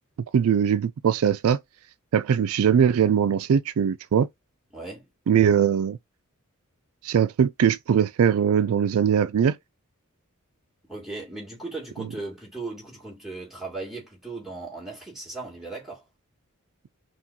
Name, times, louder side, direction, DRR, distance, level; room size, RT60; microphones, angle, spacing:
voice 1, 0.3-1.6 2.1-4.3 5.3-6.0 7.0-9.6 12.0-12.1, right 8 dB, 70° right, 0.3 m, -21 dB
voice 2, 4.7-5.1 10.9-16.0, right 3 dB, ahead, 2.4 m, -37 dB
5.9 x 2.4 x 2.8 m
head